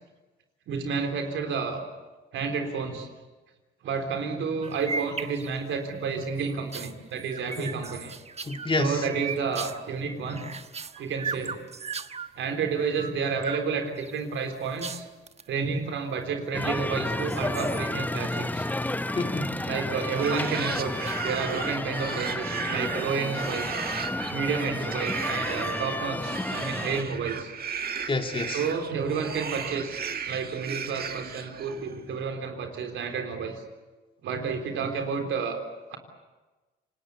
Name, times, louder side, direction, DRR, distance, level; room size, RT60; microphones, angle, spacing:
voice 1, 0.7-1.8 2.3-3.1 3.8-8.1 8.8-10.5 11.0-11.5 12.4-15.1 15.5-18.7 19.7-20.9 21.2-23.8 24.3-27.5 28.5-30.0 30.3-33.6 34.2-35.6 35.9-36.0, right 5 dB, 80° right, 5 dB, 3.7 m, -30 dB
sound 1, 4.6-5.8 6.2-12.3 12.8-13.7 14.0-15.5 16.3-16.8 17.2-19.2 19.6-20.2 21.0-21.6, right 5 dB, 30° right, 1.1 m, -38 dB
voice 2, 8.4-9.0 19.2-19.7 24.0-24.1 28.1-28.6, left 2 dB, 25° left, 5 dB, 2.4 m, -29 dB
sound 2, 16.5-27.0, left 1 dB, 10° left, 0.8 m, -31 dB
sound 3, 20.0-32.0, right 6 dB, 50° right, 1.9 m, -36 dB
27.5 x 19.5 x 8.6 m, 1.2 s
cardioid pair, 90°, 20 cm